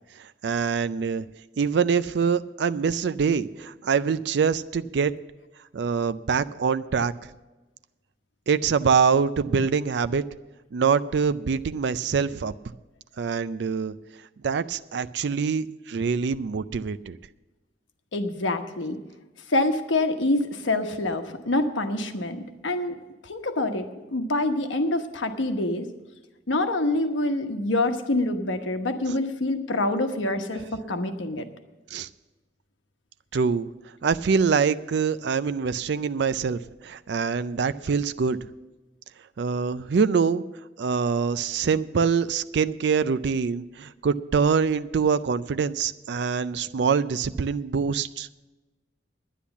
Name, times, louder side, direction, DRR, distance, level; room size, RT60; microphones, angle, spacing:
voice 1, 0.4-1.2 1.6-5.1 5.7-7.1 8.5-10.2 10.7-12.5 13.2-13.9 14.4-17.2 31.9-32.1 33.3-33.7 34.0-38.4 39.4-40.4 40.8-48.3, right 6 dB, 65° right, 13 dB, 0.4 m, -24 dB
voice 2, 18.1-19.0 19.5-23.0 23.2-23.8 24.1-25.9 26.5-30.6 30.9-31.4, left 2 dB, 85° left, 6 dB, 1.1 m, -26 dB
10.0 x 10.0 x 7.1 m, 1.1 s
head